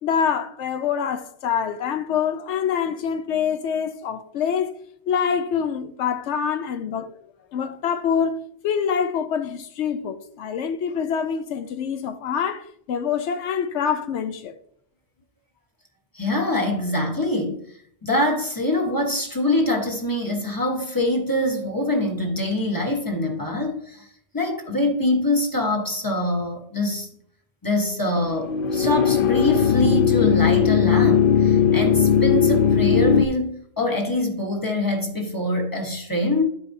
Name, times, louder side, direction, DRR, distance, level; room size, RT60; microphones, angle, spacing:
voice 1, 0.0-4.8 5.1-7.2 7.5-14.6, left 7 dB, 85° left, 0.9 m, -25 dB
voice 2, 16.1-17.6 18.0-24.1 24.3-27.1 27.6-36.4, left 1 dB, 20° left, 1.2 m, -24 dB
sound 1, 28.2-33.2, left 7 dB, 60° left, 0.7 m, -18 dB
12.0 x 4.8 x 2.7 m
omnidirectional pair, 1.2 m